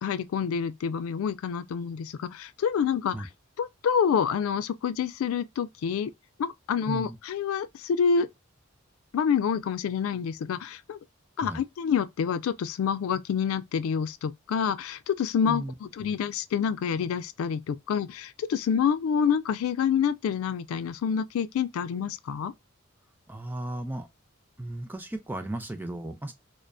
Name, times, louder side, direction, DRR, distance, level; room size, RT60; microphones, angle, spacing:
voice 1, 0.0-3.3 3.6-6.1 6.4-8.3 9.1-11.0 11.4-22.5, left 7 dB, 85° left, 0.3 m, -27 dB
voice 2, 6.9-7.2 11.4-11.6 15.5-15.7 16.0-16.1 23.3-24.1 24.6-26.3, right 1 dB, 10° right, 0.3 m, -35 dB
2.5 x 2.2 x 2.2 m
head